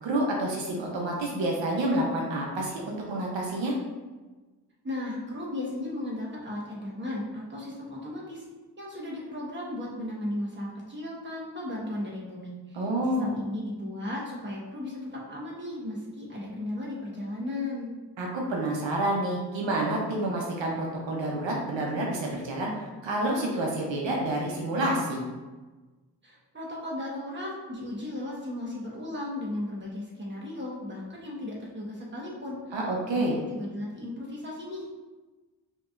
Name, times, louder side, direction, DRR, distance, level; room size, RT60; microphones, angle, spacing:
voice 1, 0.0-3.7 12.7-13.3 18.2-22.7 23.0-25.2 32.7-33.3, right 1 dB, 85° right, -1 dB, 0.8 m, -28 dB
voice 2, 4.8-8.4 8.8-17.9 26.2-32.8 33.1-35.1, left 1 dB, 25° right, -4 dB, 1.3 m, -36 dB
5.2 x 3.0 x 2.5 m, 1.2 s
cardioid pair, 60°, 43 cm